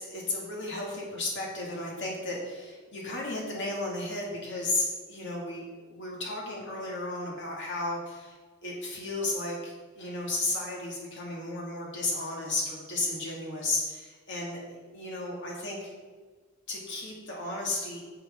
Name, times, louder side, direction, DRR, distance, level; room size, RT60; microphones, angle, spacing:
voice 1, 0.0-8.4 8.6-15.9 16.7-18.0, left 2 dB, 60° left, -2 dB, 2.4 m, -34 dB
9.6 x 6.7 x 3.8 m, 1.4 s
head